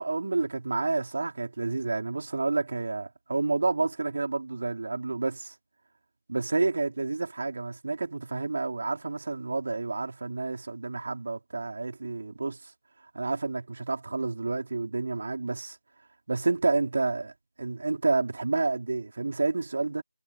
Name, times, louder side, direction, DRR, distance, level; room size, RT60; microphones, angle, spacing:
voice 1, 0.0-5.5 6.3-12.6 13.1-15.8 16.3-17.3 17.6-20.0, right 3 dB, 50° right, 4.2 m, -29 dB
figure-of-eight pair, 165°, 0 cm